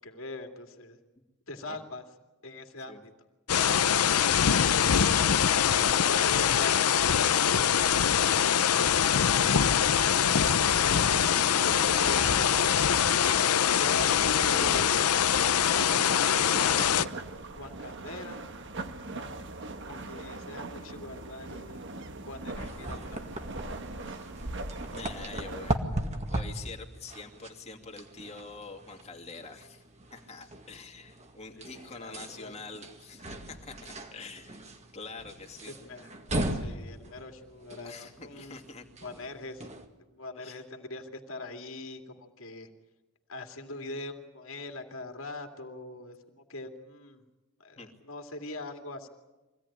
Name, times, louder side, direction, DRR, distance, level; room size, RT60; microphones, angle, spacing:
voice 1, 0.0-1.0 1.5-2.0 2.4-3.1 5.7-7.0 7.5-9.1 10.8-11.2 11.6-12.5 13.2-15.0 15.8-16.7 17.6-18.4 19.9-21.8 22.3-23.3 31.5-32.5 35.7-36.1 36.5-38.6 39.0-39.7 40.1-42.7 43.3-47.2 47.6-49.1, left 2 dB, 60° left, 4 dB, 2.5 m, -42 dB
sound 1, 3.5-17.0, left 8 dB, 85° left, 0.7 m, -23 dB
voice 2, 3.5-4.3 5.4-6.3 9.8-11.1 24.9-25.8 26.2-29.8 30.1-34.7 34.9-35.7 36.3-36.8 37.8-38.8 40.4-40.6 47.8-47.9, left 4 dB, 30° left, 2 dB, 2.6 m, -46 dB
sound 2, 10.0-25.8, right 2 dB, 55° right, 1.5 m, -42 dB
sound 3, 22.5-39.9, right 1 dB, 30° right, 1.9 m, -38 dB
24.5 x 17.0 x 10.0 m, 1.1 s
head